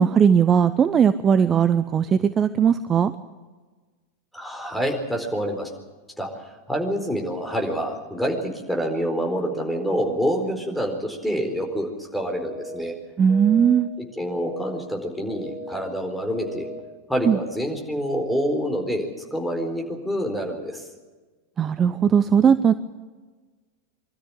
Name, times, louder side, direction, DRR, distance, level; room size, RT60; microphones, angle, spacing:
voice 1, 0.0-3.1 13.2-13.9 17.2-17.4 21.6-22.7, right 7 dB, 25° right, 12 dB, 0.7 m, -18 dB
voice 2, 4.3-5.7 6.2-6.3 6.7-12.9 14.2-16.7 17.1-20.8, equal, 5° left, 2 dB, 4.3 m, -27 dB
sound 1, 12.3-12.8 13.3-13.8 14.3-14.8 15.3-15.8 16.3-16.8, equal, 45° left, 3.7 m, -37 dB
24.5 x 13.5 x 10.0 m, 1.3 s
figure-of-eight pair, 90°, 0 cm